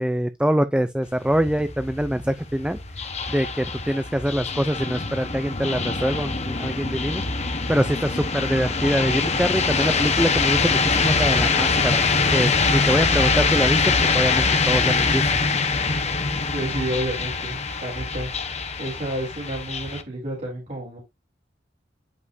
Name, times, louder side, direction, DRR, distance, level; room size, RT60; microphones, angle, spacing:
voice 1, 0.0-7.2 7.7-12.0 12.3-15.3, equal, 5° right, 0.4 m, -24 dB
sound 1, 1.0-20.0, left 4 dB, 35° left, 1.2 m, -23 dB
voice 2, 16.5-18.3 18.8-21.0, right 1 dB, 40° right, 3.7 m, -30 dB
11.0 x 5.4 x 2.7 m
head